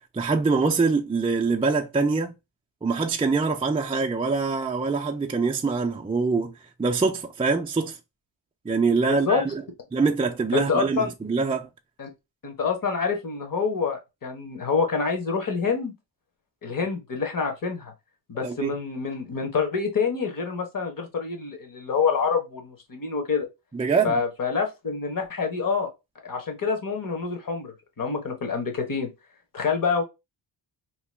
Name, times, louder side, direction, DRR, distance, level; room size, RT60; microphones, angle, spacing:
voice 1, 0.1-2.3 2.8-6.5 6.8-8.0 8.6-9.6 9.9-11.7 18.4-18.7 23.7-24.2, right 4 dB, 15° right, 0.3 m, -24 dB
voice 2, 9.0-9.4 10.5-11.1 12.0-12.1 12.4-15.9 16.6-17.9 18.3-23.5 24.0-25.9 26.2-29.1 29.5-30.0, left 5 dB, 45° left, 1.1 m, -27 dB
2.9 x 2.2 x 3.2 m
cardioid pair, 90°, 47 cm